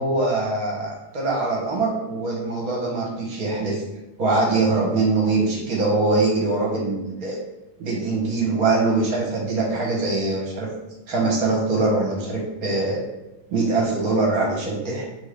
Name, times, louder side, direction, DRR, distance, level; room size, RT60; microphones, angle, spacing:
voice 1, 0.0-3.8 4.2-7.4 7.8-10.7 11.1-13.0 13.5-15.1, right 3 dB, 55° right, -2 dB, 1.4 m, -23 dB
3.7 x 3.6 x 3.4 m, 1.0 s
omnidirectional pair, 2.1 m